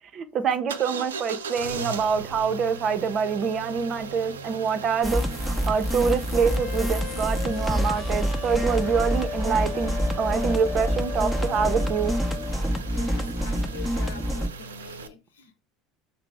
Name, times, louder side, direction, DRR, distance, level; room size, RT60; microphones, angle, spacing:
voice 1, 0.1-12.1, right 6 dB, 45° right, 0.6 m, -26 dB
sound 1, 0.7-15.1, right 6 dB, 90° right, 0.4 m, -38 dB
sound 2, 5.0-14.5, equal, 5° left, 0.7 m, -27 dB
sound 3, 6.4-12.6, left 7 dB, 35° left, 0.3 m, -36 dB
voice 2, 12.9-15.6, left 6 dB, 85° left, 0.7 m, -44 dB
5.7 x 2.0 x 3.4 m
hypercardioid pair, 80°, 0 cm